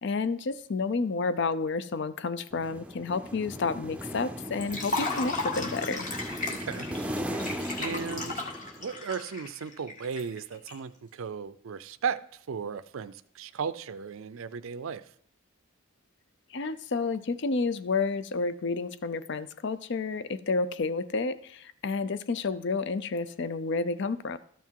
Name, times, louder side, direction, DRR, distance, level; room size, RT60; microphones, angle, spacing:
voice 1, 0.0-6.1 16.5-24.4, left 4 dB, 60° left, 0.5 m, -30 dB
sound 1, 2.5-9.0, equal, 5° right, 0.5 m, -37 dB
Liquid, 4.6-10.7, left 3 dB, 40° left, 1.7 m, -35 dB
voice 2, 6.5-6.9 7.8-8.5 8.8-15.1, right 6 dB, 80° right, 0.4 m, -36 dB
13.0 x 5.9 x 4.6 m
head